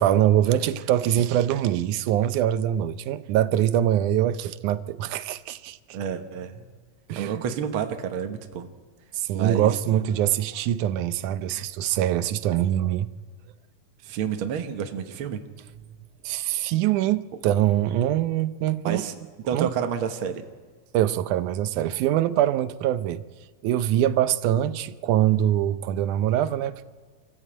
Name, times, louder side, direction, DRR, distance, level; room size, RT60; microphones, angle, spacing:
voice 1, 0.0-5.8 7.1-7.4 9.1-13.1 16.2-19.0 19.5-19.7 20.9-23.2 23.6-26.8, right 11 dB, 85° right, 2.3 m, -23 dB
voice 2, 5.9-6.7 7.1-8.7 9.3-9.7 14.0-15.4 18.8-19.1 19.5-20.5, right 8 dB, 55° right, 1.7 m, -29 dB
26.5 x 14.5 x 8.7 m
omnidirectional pair, 3.5 m